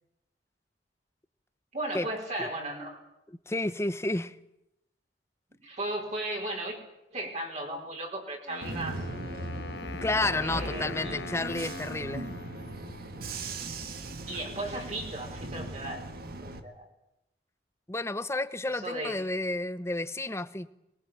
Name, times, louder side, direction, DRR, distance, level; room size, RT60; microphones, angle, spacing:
voice 1, 1.7-3.0 5.6-6.8 7.1-9.0 10.2-11.2 13.5-13.7 14.3-16.1 16.4-16.8 18.6-19.2, right 1 dB, 40° right, 4.8 m, -36 dB
voice 2, 3.5-4.3 9.9-12.3 17.9-20.7, left 2 dB, 15° left, 0.9 m, -31 dB
Wind instrument woodwind instrument, 8.5-13.4, left 4 dB, 70° left, 1.1 m, -42 dB
Bus / Engine, 8.6-16.6, right 2 dB, 55° right, 1.7 m, -38 dB
22.5 x 21.5 x 9.1 m
head